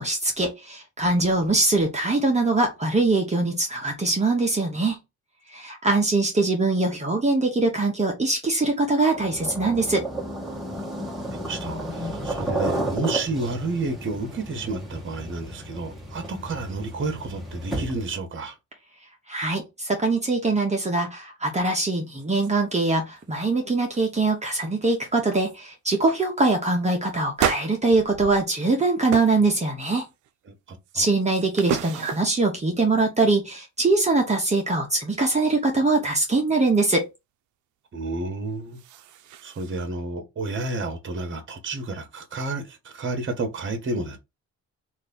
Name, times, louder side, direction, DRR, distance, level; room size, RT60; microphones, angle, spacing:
voice 1, 0.0-5.0 5.5-10.1 19.3-30.1 30.9-37.1, right 3 dB, 20° right, 0.9 m, -23 dB
sound 1, 9.1-18.2, right 1 dB, ahead, 1.2 m, -32 dB
voice 2, 11.3-18.5 30.7-31.1 37.9-38.8 39.4-44.2, right 3 dB, 40° right, 1.1 m, -31 dB
sound 2, 21.6-21.7 22.1-22.9 23.2-23.5 23.9-24.3 24.9-25.0 25.4-25.6 26.0-26.2 27.4-28.8 29.1-29.4 29.8-30.3 30.9-32.5 38.5-39.9, right 9 dB, 75° right, 0.5 m, -32 dB
3.1 x 2.6 x 3.7 m
cardioid pair, 90°, 30 cm